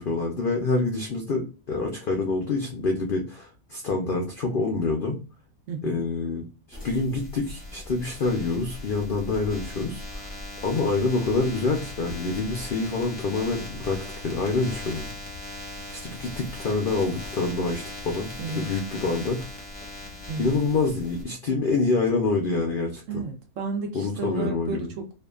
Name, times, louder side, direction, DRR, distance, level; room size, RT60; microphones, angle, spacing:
voice 1, 0.0-5.2 5.8-10.3 10.6-15.1 15.9-19.4 20.4-23.2 23.9-24.9, left 3 dB, 70° left, 0.5 m, -26 dB
voice 2, 5.7-6.0 18.4-18.7 20.3-20.5 23.1-25.1, right 3 dB, 70° right, 1.0 m, -32 dB
sound 1, 6.7-21.2, left 1 dB, 10° left, 0.6 m, -39 dB
2.7 x 2.4 x 2.2 m
omnidirectional pair, 1.5 m